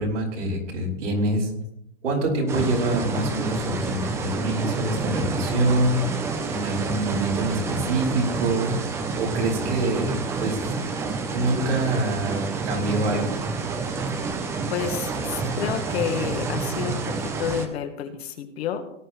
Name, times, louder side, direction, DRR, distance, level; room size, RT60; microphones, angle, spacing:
voice 1, 0.0-1.5 2.0-6.0 6.5-8.7 9.2-10.7 11.3-13.3, right 2 dB, 90° right, -1 dB, 5.2 m, -25 dB
sound 1, 2.5-17.7, right 4 dB, 10° right, 0.5 m, -29 dB
voice 2, 14.7-17.0 17.4-18.8, left 8 dB, 60° left, 6 dB, 1.6 m, -29 dB
17.5 x 11.0 x 3.1 m, 0.79 s
hypercardioid pair, 155°, 36 cm